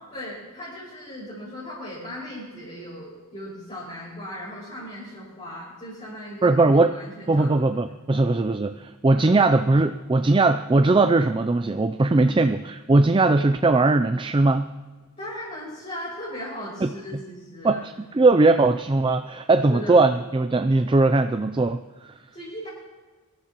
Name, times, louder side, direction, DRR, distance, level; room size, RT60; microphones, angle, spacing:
voice 1, 0.1-6.6 6.9-7.6 8.1-8.2 9.1-9.3 12.1-12.4 15.2-18.0 19.7-20.0 22.3-22.7, equal, 30° left, -10 dB, 5.7 m, -37 dB
voice 2, 6.4-6.9 7.3-14.7 16.8-16.9 17.6-21.8 22.0-22.1, right 3 dB, 20° right, 8 dB, 0.3 m, -19 dB
24.0 x 13.5 x 3.0 m, 1.3 s
head